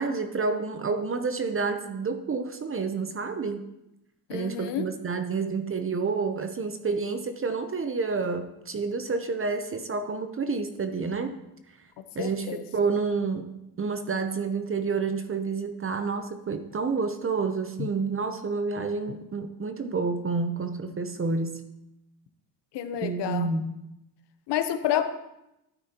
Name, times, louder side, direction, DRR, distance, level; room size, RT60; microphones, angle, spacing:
voice 1, 0.0-3.6 4.3-11.4 12.1-13.5 13.8-21.6 23.0-23.7, right 4 dB, 30° right, 8 dB, 0.8 m, -29 dB
voice 2, 4.3-4.9 12.2-12.6 17.8-17.9 22.7-23.5 24.5-25.1, left 10 dB, 80° left, 9 dB, 0.9 m, -29 dB
12.0 x 9.3 x 2.9 m, 0.88 s
cardioid pair, 100°, 41 cm